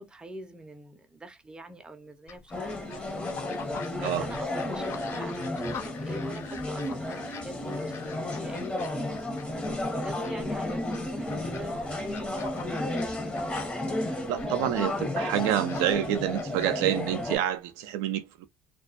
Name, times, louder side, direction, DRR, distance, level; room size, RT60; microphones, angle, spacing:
voice 1, 0.0-3.3 3.8-4.8 5.1-9.2 9.6-13.4, right 1 dB, 15° right, 0.6 m, -43 dB
sound 1, 2.3-17.5, left 6 dB, 45° left, 0.5 m, -45 dB
sound 2, 2.5-17.4, left 1 dB, 15° left, 1.0 m, -33 dB
sound 3, 2.8-8.7, left 10 dB, 80° left, 0.9 m, -51 dB
voice 2, 14.3-18.5, right 11 dB, 75° right, 0.4 m, -28 dB
2.3 x 2.3 x 2.4 m
supercardioid pair, 85°, 6 cm